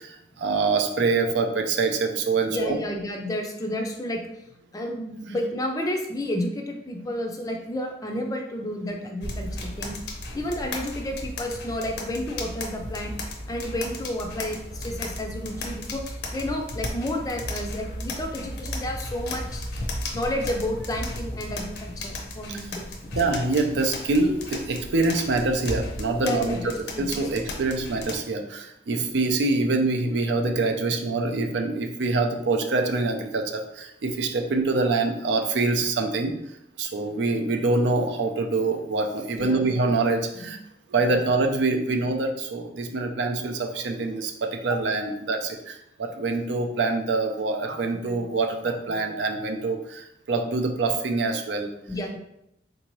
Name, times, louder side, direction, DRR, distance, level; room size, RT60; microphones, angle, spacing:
voice 1, 0.0-2.8 22.5-22.6 23.2-26.7 27.0-36.3 36.8-40.6 40.9-51.7, right 3 dB, 75° right, 4 dB, 0.5 m, -25 dB
voice 2, 2.5-4.2 4.7-10.0 10.3-13.2 13.5-19.7 20.1-23.1 26.2-27.2 39.3-39.8 40.3-40.6 44.7-44.8 51.9-52.2, left 1 dB, 20° left, 3 dB, 0.4 m, -31 dB
sound 1, 9.2-28.2, left 1 dB, 65° left, 0.6 m, -35 dB
3.8 x 2.7 x 3.0 m, 0.81 s
head